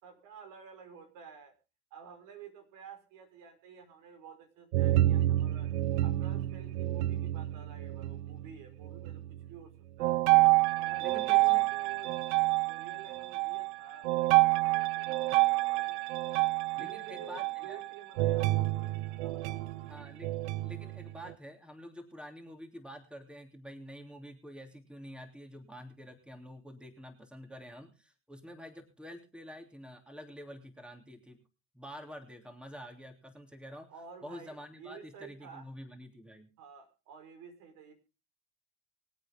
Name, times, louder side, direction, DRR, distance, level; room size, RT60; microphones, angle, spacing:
voice 1, 0.0-1.5 1.9-5.7 6.0-9.2 9.5-9.7 10.0-10.2 10.8-12.1 12.7-16.1 16.8-19.6 33.9-35.7 36.6-37.9, right 7 dB, 70° right, 6 dB, 5.1 m, -51 dB
sound 1, 4.7-8.5 8.8-9.5 10.0-21.3, right 17 dB, 90° right, 0.6 m, -28 dB
voice 2, 11.0-11.6 16.8-17.8 19.8-20.3 20.6-31.4 31.7-33.9 34.2-36.5, equal, 5° right, 4 dB, 3.1 m, -48 dB
24.5 x 8.6 x 3.7 m, 0.32 s
supercardioid pair, 95°, 33 cm